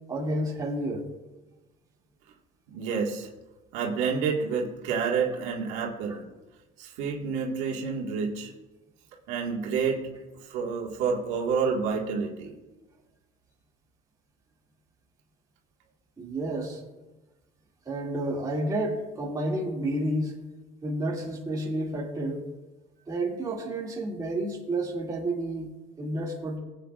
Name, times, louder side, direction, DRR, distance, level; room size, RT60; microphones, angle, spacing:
voice 1, 0.1-1.1 16.2-16.8 17.9-20.4 20.8-22.4 23.1-25.7 26.0-26.6, right 1 dB, 20° right, -4 dB, 2.5 m, -30 dB
voice 2, 2.7-3.3 3.7-6.2 6.8-8.5 9.3-10.0 10.4-12.5, right 5 dB, 85° right, -2 dB, 1.8 m, -29 dB
20.5 x 8.3 x 2.5 m, 1.1 s
cardioid pair, 135°, 19 cm